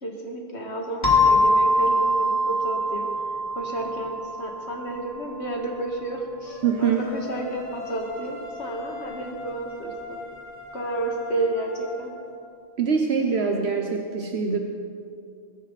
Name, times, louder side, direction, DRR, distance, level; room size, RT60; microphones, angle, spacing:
voice 1, 0.0-3.1 3.5-10.2 10.7-12.1, right 1 dB, 80° left, 0 dB, 2.4 m, -31 dB
sound 1, 1.0-5.4, left 1 dB, 40° left, 2.6 m, -23 dB
sound 2, 6.5-12.2, left 1 dB, 10° right, 3.4 m, -39 dB
voice 2, 6.6-7.0 12.8-14.6, right 6 dB, 70° right, 3 dB, 1.2 m, -23 dB
21.5 x 13.5 x 4.2 m, 2.4 s
omnidirectional pair, 1.1 m